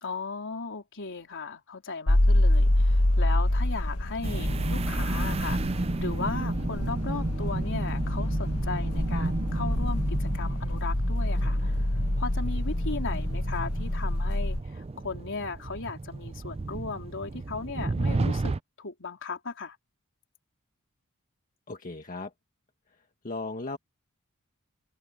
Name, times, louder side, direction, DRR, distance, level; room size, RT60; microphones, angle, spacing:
voice 1, 0.0-11.9 12.2-19.8, left 4 dB, 60° left, 3.9 m, -37 dB
sound 1, 2.1-14.6, left 1 dB, 75° left, 1.6 m, -27 dB
sound 2, 4.2-18.6, right 3 dB, 25° right, 0.5 m, -33 dB
voice 2, 21.7-22.3 23.2-23.8, left 3 dB, 40° left, 1.6 m, -36 dB
head